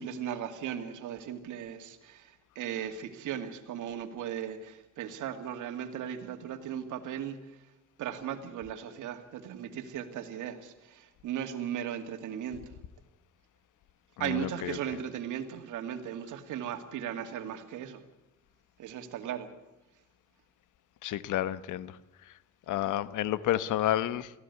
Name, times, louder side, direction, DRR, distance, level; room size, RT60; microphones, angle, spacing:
voice 1, 0.0-7.4 8.0-12.7 14.2-18.0 18.8-19.5, right 9 dB, 85° right, 8 dB, 2.3 m, -37 dB
voice 2, 14.2-14.8 21.0-21.9 22.7-24.3, left 13 dB, 80° left, 16 dB, 1.1 m, -30 dB
23.0 x 16.0 x 8.3 m, 0.99 s
cardioid pair, 90°, 30 cm